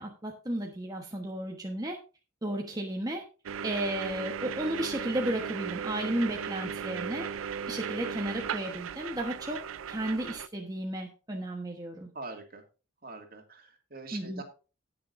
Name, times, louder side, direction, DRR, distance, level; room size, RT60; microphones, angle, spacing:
voice 1, 0.0-2.0 2.4-3.2 3.6-7.3 7.7-9.6 9.9-12.1 14.1-14.4, right 1 dB, 20° right, 1 dB, 1.2 m, -33 dB
sound 1, 3.5-10.5, right 7 dB, 85° right, 0.4 m, -36 dB
voice 2, 12.1-12.6 13.0-14.4, right 3 dB, 45° right, 4 dB, 2.3 m, -43 dB
18.5 x 6.8 x 2.6 m, 0.33 s
head